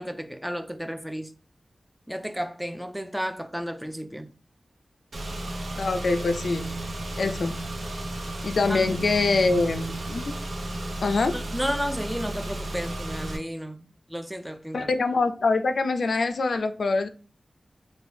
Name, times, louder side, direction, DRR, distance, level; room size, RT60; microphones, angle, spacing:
voice 1, 0.0-1.3 2.1-4.3 8.7-8.9 11.3-14.9, equal, 5° right, 0.3 m, -33 dB
Car / Engine, 5.1-13.4, right 1 dB, 80° right, 0.6 m, -33 dB
voice 2, 5.8-6.7 7.2-7.6 8.4-10.3 11.0-11.3 14.7-17.1, left 3 dB, 80° left, 0.3 m, -24 dB
2.6 x 2.6 x 3.3 m
wide cardioid pair, 110°, 0 cm